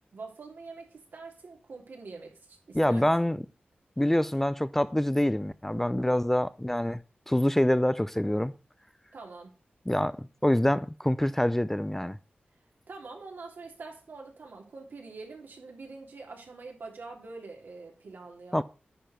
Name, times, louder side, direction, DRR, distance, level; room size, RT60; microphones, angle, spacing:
voice 1, 0.1-3.4 9.1-9.6 12.9-18.6, right 3 dB, 80° right, 3.1 m, -45 dB
voice 2, 2.7-3.4 4.0-7.0 7.3-8.5 9.9-12.2 18.5-18.6, left 1 dB, 10° left, 0.4 m, -26 dB
10.0 x 4.8 x 5.7 m
wide cardioid pair, 100°, 3 cm